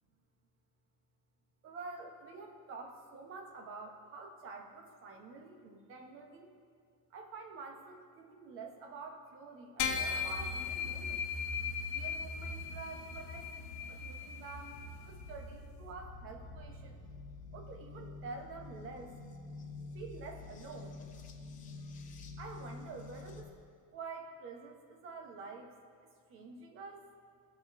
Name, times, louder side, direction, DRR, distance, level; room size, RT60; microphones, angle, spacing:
voice 1, 1.6-6.5 7.1-11.2 11.9-14.8 15.0-17.0 17.5-19.1 19.9-21.0 22.4-23.5 23.9-25.7 26.3-27.0, right 4 dB, 30° right, 3 dB, 0.9 m, -48 dB
sound 1, 9.8-15.4, left 6 dB, 85° left, 1.1 m, -38 dB
sound 2, 14.7-23.4, left 3 dB, 20° left, 0.5 m, -48 dB
18.5 x 6.3 x 2.6 m, 2.2 s
supercardioid pair, 160°, 42 cm